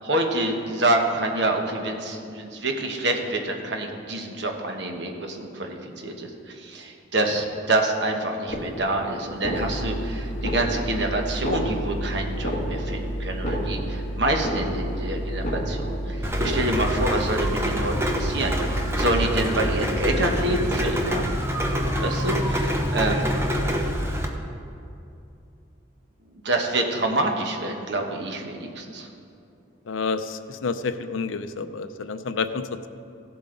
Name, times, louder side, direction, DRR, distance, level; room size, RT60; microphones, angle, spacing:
voice 1, 0.0-21.2 22.0-23.3 26.4-29.1, right 2 dB, 60° right, 3 dB, 1.2 m, -27 dB
sound 1, 8.5-9.0 9.3-10.0 10.3-11.0 11.3-12.0 12.3-13.0 13.3-14.0 14.3-15.0 15.3-16.0 16.3-17.0, equal, 40° left, 1.7 m, -31 dB
sound 2, 9.5-21.0, right 1 dB, 60° left, 1.3 m, -31 dB
Rain, 16.2-24.2, equal, 15° right, 0.7 m, -26 dB
voice 2, 29.9-32.9, left 4 dB, 75° left, 10 dB, 0.5 m, -29 dB
16.0 x 7.8 x 3.9 m, 2.6 s
head